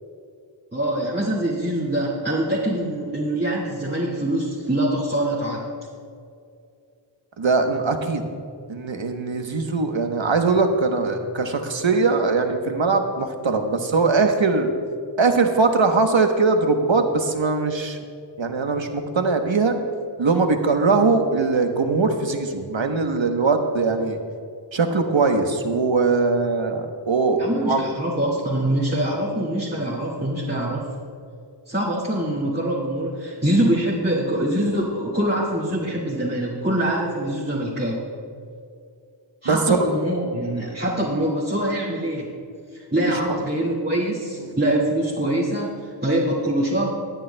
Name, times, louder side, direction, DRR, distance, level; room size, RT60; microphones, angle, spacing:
voice 1, 0.7-5.7 27.4-30.9 31.7-38.0 39.4-42.3 42.7-47.0, right 1 dB, 20° right, -7 dB, 2.0 m, -24 dB
voice 2, 7.4-8.2 8.7-14.7 15.2-18.0 18.4-19.8 20.2-24.2 24.7-27.8 39.4-39.9 44.4-44.5, right 4 dB, 75° right, 5 dB, 1.1 m, -21 dB
21.0 x 9.3 x 2.2 m, 2.3 s
wide cardioid pair, 40°, 47 cm